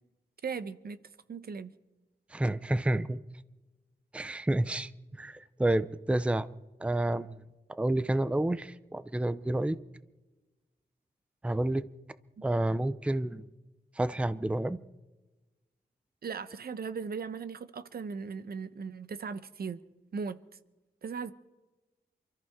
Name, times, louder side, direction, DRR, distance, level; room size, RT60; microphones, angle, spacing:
voice 1, 0.4-1.0 1.3-1.7 16.2-19.8 20.1-20.4 21.0-21.3, right 5 dB, 65° right, 0.9 m, -38 dB
voice 2, 2.3-3.2 4.1-4.9 5.2-6.5 6.8-7.4 7.7-9.8 11.4-11.9 12.4-13.4 14.0-14.8, right 1 dB, 5° right, 0.5 m, -29 dB
28.5 x 14.0 x 3.6 m
wide cardioid pair, 110°, 17 cm